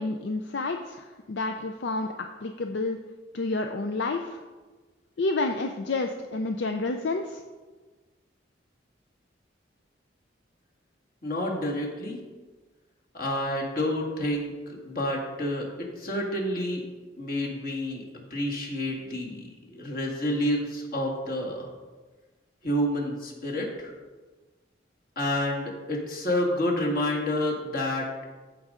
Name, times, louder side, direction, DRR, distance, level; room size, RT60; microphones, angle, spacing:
voice 1, 0.0-3.0 3.3-4.4 5.2-7.4, left 3 dB, 70° left, 5 dB, 0.5 m, -29 dB
voice 2, 11.2-12.2 13.1-14.5 14.8-15.7 16.0-16.8 17.2-18.0 18.3-21.7 22.6-23.9 25.2-28.1, left 1 dB, 50° left, -1 dB, 1.8 m, -29 dB
14.5 x 5.3 x 3.7 m, 1.3 s
head